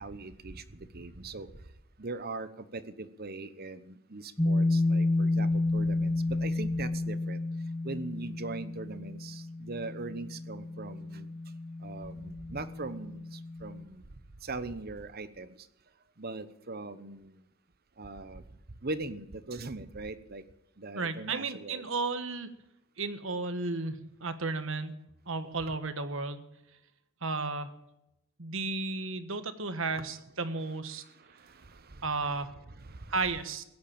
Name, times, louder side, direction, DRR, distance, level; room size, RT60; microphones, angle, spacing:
voice 1, 0.0-1.5 2.0-7.4 7.8-11.3 11.8-14.0 14.4-15.5 16.2-17.4 18.0-18.4 18.8-20.4 20.8-21.8 30.0-30.1 31.7-32.3 32.8-33.0, right 3 dB, 45° right, 14 dB, 1.0 m, -40 dB
sound 1, 4.4-13.8, left 2 dB, 15° left, 0.7 m, -31 dB
voice 2, 20.9-22.5 23.0-24.9 25.3-26.4 27.2-27.7 28.4-31.0 32.0-32.5 33.1-33.6, right 3 dB, 65° right, 10 dB, 1.4 m, -33 dB
16.5 x 9.8 x 8.8 m, 0.88 s
head